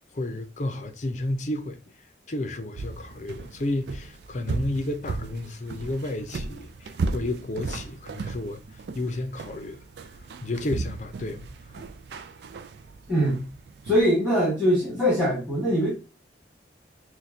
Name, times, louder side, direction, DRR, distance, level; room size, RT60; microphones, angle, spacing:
voice 1, 0.1-1.8 2.3-8.6 8.9-9.8 10.4-11.5 11.8-11.9, left 1 dB, 40° left, 0.6 m, -31 dB
sound 1, 2.8-14.0, right 3 dB, 65° right, 0.4 m, -36 dB
voice 2, 13.1-13.5 13.8-15.9, equal, 5° right, 2.0 m, -22 dB
6.2 x 2.3 x 2.7 m
head